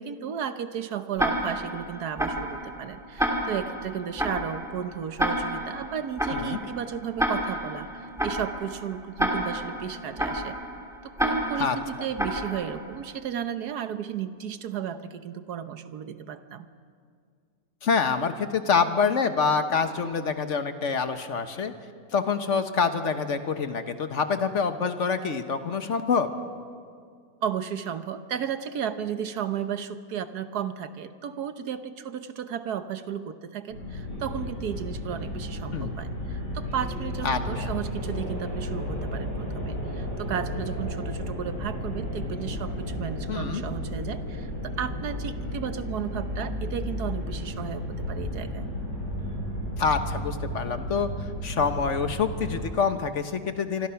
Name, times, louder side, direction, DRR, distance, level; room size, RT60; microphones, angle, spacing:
voice 1, 0.0-10.6 11.0-16.7 27.4-48.7, right 8 dB, 65° right, 10 dB, 1.4 m, -34 dB
Tick-tock, 1.2-13.0, equal, ahead, 2.5 m, -30 dB
voice 2, 17.8-21.7 22.1-26.3 35.7-36.0 37.2-37.7 43.3-43.6 49.8-53.9, left 5 dB, 45° left, 8 dB, 1.3 m, -26 dB
sound 1, 33.7-52.6, left 1 dB, 75° left, 8.6 m, -33 dB
25.5 x 25.5 x 5.9 m, 2.1 s
omnidirectional pair, 1.9 m